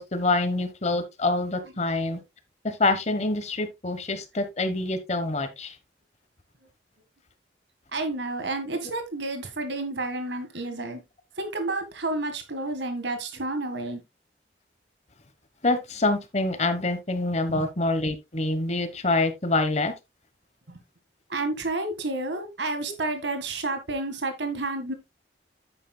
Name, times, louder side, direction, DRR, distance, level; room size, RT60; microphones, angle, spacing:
voice 1, 0.0-2.2 2.6-5.8 10.7-10.9 15.6-19.9, left 2 dB, 40° left, 1.2 m, -26 dB
voice 2, 7.9-11.0 11.4-14.0 17.5-17.6 20.7-20.8 21.3-24.9, right 2 dB, 70° right, 1.8 m, -30 dB
9.7 x 9.3 x 2.3 m
head